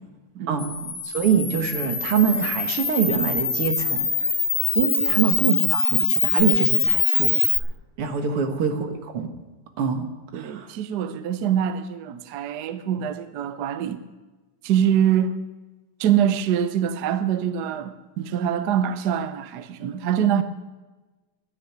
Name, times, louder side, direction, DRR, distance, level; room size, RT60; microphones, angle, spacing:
voice 1, 0.3-0.9 5.0-5.2 8.3-8.5 10.3-14.0 14.6-15.4 16.0-20.4, right 9 dB, 60° right, 1.2 m, -24 dB
Camera, 0.6-7.6, left 5 dB, 35° left, 1.0 m, -23 dB
voice 2, 1.0-4.3 4.8-7.3 8.0-9.3 9.8-10.1 10.3-10.7, right 7 dB, 85° right, 2.5 m, -24 dB
11.5 x 9.8 x 9.3 m
omnidirectional pair, 2.4 m